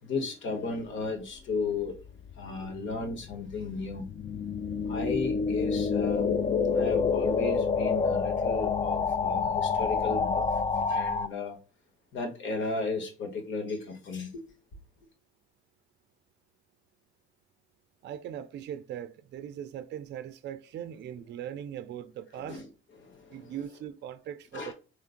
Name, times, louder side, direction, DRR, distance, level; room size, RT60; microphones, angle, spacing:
voice 1, 0.0-2.0 2.3-4.1 4.7-10.6 10.9-11.6 12.1-14.4 22.3-22.7 23.0-23.6 24.5-24.7, left 3 dB, 70° left, 1.2 m, -35 dB
sound 1, 1.9-11.3, left 5 dB, 30° left, 0.3 m, -28 dB
voice 2, 18.0-22.6 23.3-24.7, right 10 dB, 60° right, 0.4 m, -40 dB
3.7 x 3.1 x 2.5 m
cardioid pair, 90°, 20 cm